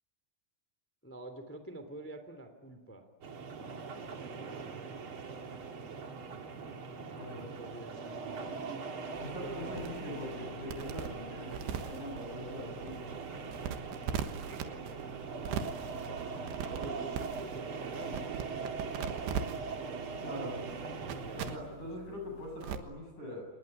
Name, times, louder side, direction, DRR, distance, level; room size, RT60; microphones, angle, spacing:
voice 1, 1.0-3.1 4.1-5.8 6.9-8.7 9.4-9.8 14.5-15.0 16.0-18.4 18.7-19.5 19.8-20.0 21.0-21.7, right 2 dB, 5° left, 8 dB, 1.9 m, -49 dB
sound 1, 3.2-21.6, right 5 dB, 55° right, 1.5 m, -41 dB
voice 2, 7.1-7.5 9.1-13.1 20.2-20.6 21.3-23.5, left 1 dB, 45° left, 2 dB, 9.4 m, -42 dB
sound 2, 9.2-22.8, right 8 dB, 75° right, 3.3 m, -42 dB
27.5 x 20.0 x 9.9 m, 1.3 s
omnidirectional pair, 5.3 m